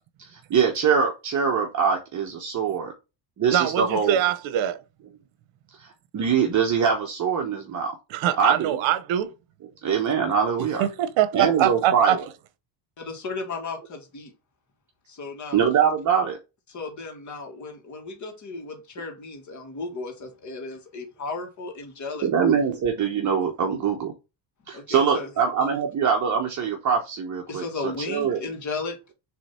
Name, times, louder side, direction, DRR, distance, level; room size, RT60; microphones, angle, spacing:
voice 1, 0.2-2.9 3.4-4.2 5.8-7.9 8.4-8.8 9.8-10.8 11.3-12.3 15.5-16.4 22.2-24.1 24.7-28.4, right 6 dB, 40° right, 1.1 m, -23 dB
voice 2, 3.5-4.8 8.2-9.3 10.8-12.2, right 11 dB, 75° right, 1.0 m, -23 dB
voice 3, 13.0-14.3 15.1-15.6 16.7-22.3 24.7-25.3 27.5-29.0, left 3 dB, 40° left, 2.0 m, -35 dB
6.8 x 3.4 x 4.3 m
cardioid pair, 160°, 46 cm